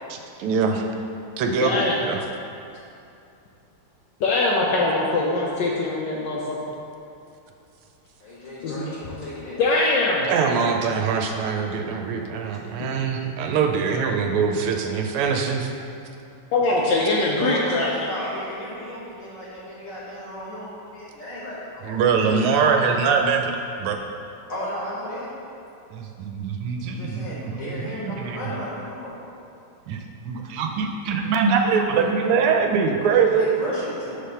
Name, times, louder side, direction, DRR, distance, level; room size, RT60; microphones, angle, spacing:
voice 1, 0.1-0.9 1.4-2.2 10.3-15.7 21.8-23.5 23.8-24.0 25.9-28.4 29.9-33.5, right 5 dB, 85° right, 3 dB, 1.5 m, -23 dB
voice 2, 1.6-2.1 4.2-6.6 8.6-8.8 9.6-10.3 12.8-12.9 16.5-17.9, left 2 dB, 75° left, -3 dB, 1.1 m, -22 dB
voice 3, 8.2-9.6 17.4-22.0 22.4-22.9 24.5-25.3 26.8-29.1 31.4-32.0 33.4-34.2, left 1 dB, 50° left, -7 dB, 1.0 m, -34 dB
5.9 x 3.4 x 5.5 m, 2.6 s
omnidirectional pair, 2.4 m